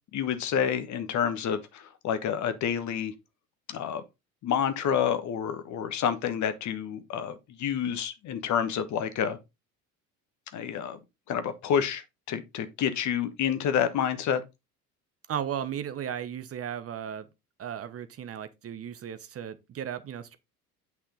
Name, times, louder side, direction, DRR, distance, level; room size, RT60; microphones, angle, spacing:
voice 1, 0.1-3.1 3.7-4.0 4.4-9.4 10.5-11.0 11.3-14.4, left 8 dB, 40° left, 1.3 m, -29 dB
voice 2, 15.3-17.3 17.6-20.4, right 9 dB, 30° right, 1.0 m, -35 dB
8.5 x 5.9 x 3.8 m
figure-of-eight pair, 65°, 46 cm